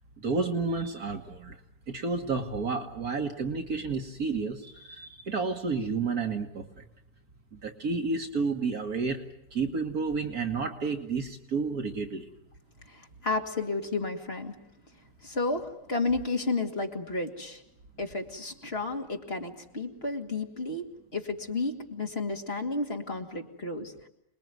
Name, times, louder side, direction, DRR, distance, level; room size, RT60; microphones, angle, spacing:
voice 1, 0.2-1.6 1.9-6.6 7.5-9.2 9.5-12.3, right 4 dB, 60° right, 5 dB, 2.0 m, -31 dB
voice 2, 12.9-14.5 15.2-17.6 18.0-23.9, left 3 dB, 35° left, 3 dB, 2.5 m, -32 dB
27.0 x 21.0 x 9.4 m, 0.79 s
omnidirectional pair, 1.8 m